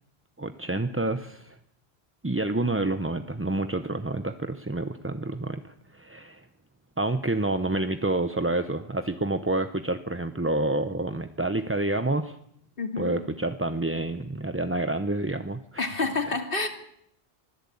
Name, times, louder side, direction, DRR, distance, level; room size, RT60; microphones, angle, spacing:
voice 1, 0.4-1.6 2.2-6.5 7.0-12.4 13.0-15.8 16.3-16.4, right 2 dB, 15° right, 9 dB, 0.7 m, -28 dB
voice 2, 12.8-13.2 15.8-16.7, left 3 dB, 55° left, 6 dB, 2.8 m, -28 dB
24.5 x 16.0 x 8.7 m, 0.72 s
omnidirectional pair, 1.1 m